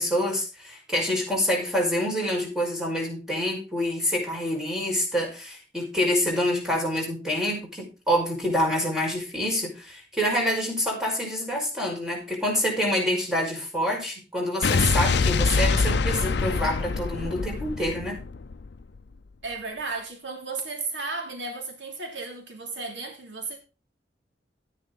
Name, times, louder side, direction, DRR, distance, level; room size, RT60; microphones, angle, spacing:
voice 1, 0.0-18.2, equal, 5° right, 5.6 m, -27 dB
Explosion, 14.6-19.0, left 4 dB, 65° left, 0.6 m, -25 dB
voice 2, 19.4-23.6, right 3 dB, 80° right, 3.1 m, -34 dB
13.0 x 10.0 x 4.1 m
head